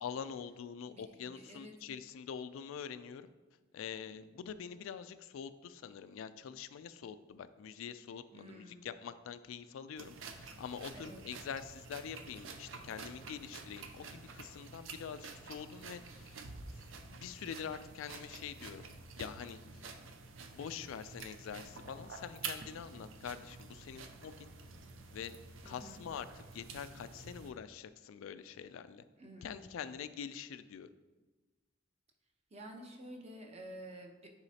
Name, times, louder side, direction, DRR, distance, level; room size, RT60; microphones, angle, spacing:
voice 1, 0.0-3.3 3.7-16.4 16.7-18.9 19.2-19.9 20.5-24.5 25.1-25.4 25.6-29.0 29.4-30.9, left 7 dB, 90° left, 12 dB, 0.3 m, -45 dB
voice 2, 0.9-1.7 8.3-8.8 10.9-11.2 25.6-26.0 29.2-29.7 32.5-34.3, right 1 dB, 35° right, 2 dB, 0.8 m, -50 dB
sound 1, 10.0-27.5, right 4 dB, 80° right, 0.6 m, -49 dB
9.7 x 4.1 x 2.8 m, 1.2 s
head